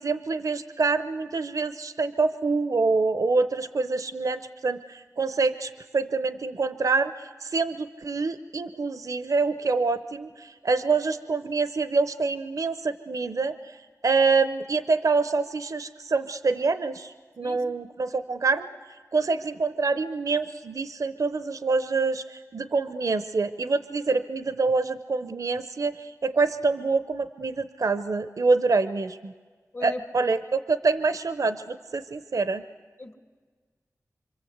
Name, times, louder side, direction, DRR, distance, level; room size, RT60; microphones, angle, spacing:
voice 1, 0.0-13.8 14.0-18.7 19.1-29.3 29.8-32.6, right 4 dB, 70° right, 11 dB, 0.7 m, -26 dB
voice 2, 17.4-17.6 29.7-30.0 33.0-33.2, left 2 dB, 50° left, 7 dB, 1.7 m, -37 dB
26.0 x 25.0 x 7.9 m, 1.5 s
wide cardioid pair, 65°, 6 cm